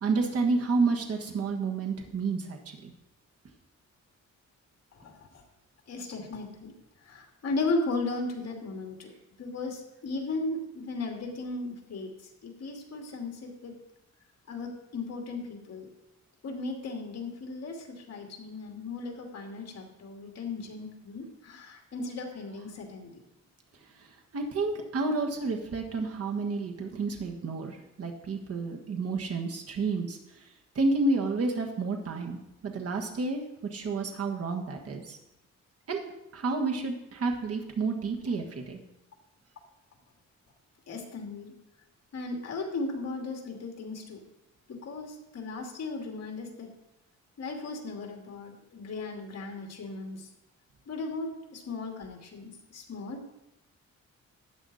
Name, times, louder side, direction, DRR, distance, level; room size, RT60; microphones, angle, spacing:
voice 1, 0.0-2.9 24.3-30.2 30.7-33.4 33.7-35.2 35.9-36.0 36.3-38.8, right 3 dB, 55° right, 2 dB, 1.6 m, -30 dB
voice 2, 5.9-6.7 7.0-9.1 9.4-12.1 12.4-13.7 14.5-15.9 16.4-23.1 40.9-41.5 42.1-44.2 44.7-46.7 47.4-50.3 50.9-53.3, left 3 dB, 60° left, 1 dB, 2.5 m, -36 dB
13.0 x 8.6 x 4.2 m, 0.89 s
wide cardioid pair, 130°, 29 cm